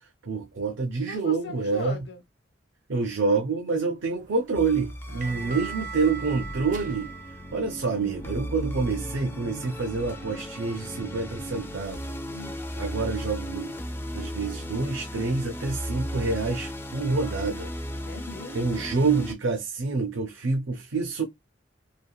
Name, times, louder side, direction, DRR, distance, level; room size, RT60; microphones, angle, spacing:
voice 1, 0.2-2.0 2.9-7.1 7.5-12.0 12.8-13.8 14.1-17.7 18.5-21.2, right 4 dB, 85° right, 0.6 m, -27 dB
voice 2, 1.1-2.2 5.1-5.8 6.1-6.5 12.3-12.6 18.0-18.9, left 3 dB, 60° left, 0.7 m, -41 dB
sound 1, 4.1-8.9, right 6 dB, 45° right, 0.6 m, -41 dB
sound 2, 4.6-19.3, equal, 10° left, 0.4 m, -36 dB
3.3 x 2.3 x 2.3 m
head